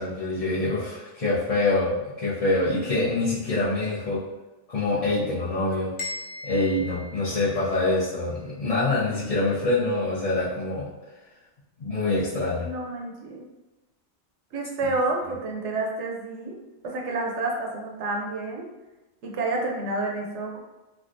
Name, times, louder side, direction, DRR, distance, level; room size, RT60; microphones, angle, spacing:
voice 1, 0.0-1.9 2.2-4.2 4.7-5.9 6.4-10.9 11.8-12.7, left 2 dB, 40° left, -11 dB, 0.6 m, -25 dB
sound 1, 6.0-8.0, left 2 dB, 80° left, 1.1 m, -38 dB
voice 2, 12.6-13.5 14.5-16.6 16.8-18.7 19.2-20.6, right 2 dB, 80° right, 0 dB, 0.9 m, -29 dB
3.3 x 2.4 x 2.6 m, 1.1 s
omnidirectional pair, 1.2 m